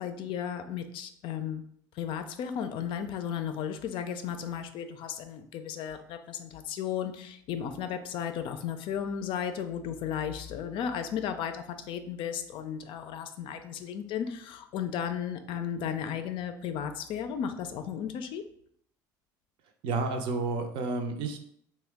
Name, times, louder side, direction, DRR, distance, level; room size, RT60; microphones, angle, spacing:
voice 1, 0.0-1.6 2.0-18.4, left 8 dB, 60° left, 8 dB, 0.4 m, -34 dB
voice 2, 19.8-21.4, right 3 dB, 60° right, 5 dB, 0.5 m, -30 dB
3.0 x 2.1 x 3.4 m, 0.68 s
hypercardioid pair, 80°, 10 cm